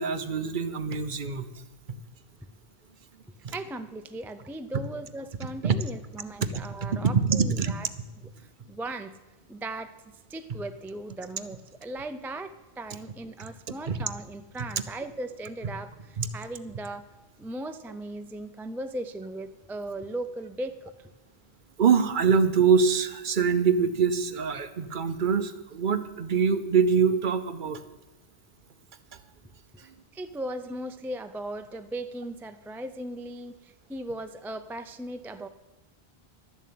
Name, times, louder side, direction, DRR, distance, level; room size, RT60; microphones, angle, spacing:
voice 1, 0.0-1.4 3.4-3.5 5.6-5.8 6.8-7.7 13.9-14.0 16.2-16.3 21.8-27.8, right 6 dB, 55° right, 11 dB, 0.8 m, -24 dB
voice 2, 3.5-7.9 8.4-9.1 9.5-9.9 10.3-17.1 17.4-21.1 29.7-35.5, right 1 dB, 5° right, 10 dB, 0.3 m, -38 dB
12.5 x 7.3 x 8.5 m, 1.1 s
omnidirectional pair, 1.0 m